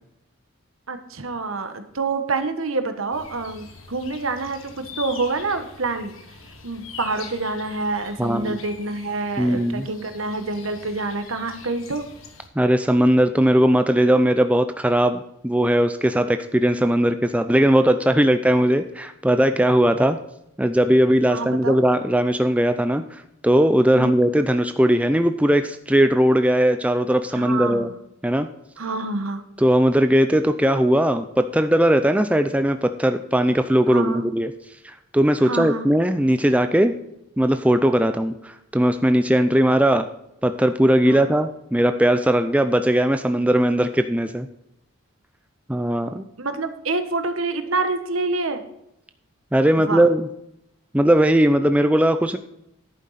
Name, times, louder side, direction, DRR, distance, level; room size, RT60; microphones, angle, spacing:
voice 1, 0.9-6.1 6.6-12.0 21.3-21.8 23.9-24.2 27.3-28.0 28.8-29.4 33.9-34.2 35.4-35.9 41.0-41.3 46.4-48.6 49.7-50.0, right 3 dB, 75° right, 8 dB, 1.3 m, -27 dB
sound 1, 3.1-12.5, left 5 dB, 75° left, 1.6 m, -43 dB
voice 2, 8.2-8.6 9.4-9.9 12.6-20.2 20.6-27.9 28.2-28.5 29.6-34.5 34.8-36.9 37.4-40.0 40.4-44.5 45.7-46.3 49.5-50.3 50.9-52.4, right 1 dB, 5° right, 8 dB, 0.4 m, -19 dB
11.0 x 8.9 x 4.2 m, 0.81 s
head